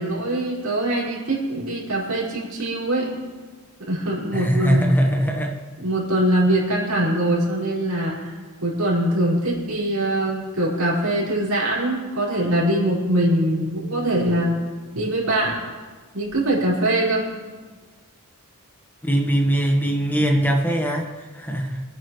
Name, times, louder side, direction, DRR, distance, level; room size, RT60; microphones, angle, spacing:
voice 1, 0.0-3.1 3.9-4.8 5.8-8.3 8.6-14.6 14.9-15.6 16.1-17.3, right 1 dB, 75° right, -6 dB, 5.3 m, -22 dB
voice 2, 4.3-5.6 19.0-21.8, right 1 dB, 10° left, 2 dB, 1.3 m, -21 dB
27.0 x 9.5 x 3.2 m, 1.4 s
head